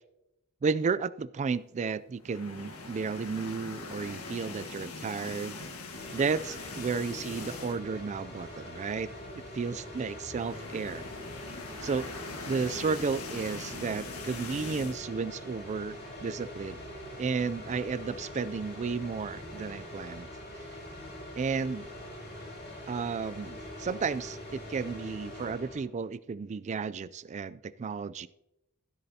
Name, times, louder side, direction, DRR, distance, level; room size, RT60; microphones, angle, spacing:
voice 1, 0.6-5.6 6.1-9.1 9.5-11.0 11.8-12.1 12.5-16.8 17.2-20.3 21.4-21.9 22.9-28.3, right 5 dB, 30° right, 16 dB, 0.3 m, -33 dB
sound 1, 2.2-8.0 8.4-8.5 8.8-8.9 10.0-15.0, left 3 dB, 75° left, 1.6 m, -42 dB
sound 2, 5.9-25.8, left 1 dB, 50° left, 4.4 m, -43 dB
15.5 x 10.0 x 2.8 m, 0.88 s
head